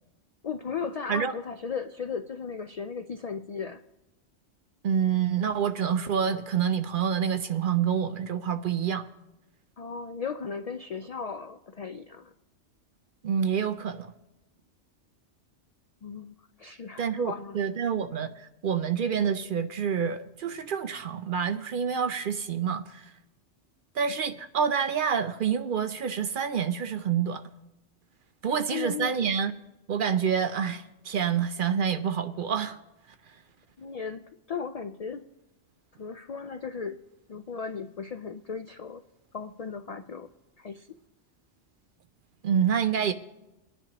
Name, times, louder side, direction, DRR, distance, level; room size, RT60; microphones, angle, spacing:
voice 1, 0.4-3.8 9.8-12.3 16.0-17.6 28.4-29.3 33.8-35.2 36.0-37.0 37.3-39.0 39.3-40.3 40.6-40.9, left 6 dB, 70° left, 0.3 m, -36 dB
voice 2, 4.8-9.1 13.2-14.1 17.0-23.1 23.9-27.4 28.4-29.5 29.9-32.8 42.4-43.1, right 7 dB, 60° right, 0.6 m, -27 dB
23.0 x 10.0 x 2.9 m
omnidirectional pair, 1.2 m